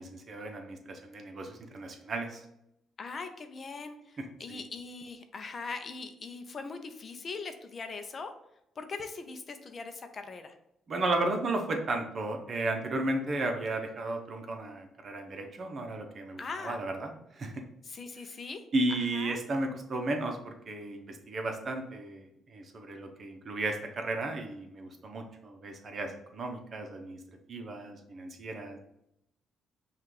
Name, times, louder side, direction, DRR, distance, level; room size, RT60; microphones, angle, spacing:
voice 1, 0.0-2.4 4.5-4.6 10.9-17.5 18.7-27.2 27.5-28.8, right 2 dB, 45° right, 4 dB, 0.8 m, -34 dB
voice 2, 3.0-8.3 8.8-10.5 16.4-16.8 17.8-18.6 19.0-19.4, left 4 dB, 45° left, 7 dB, 0.5 m, -41 dB
5.6 x 2.4 x 3.2 m, 0.80 s
cardioid pair, 90°, 0 cm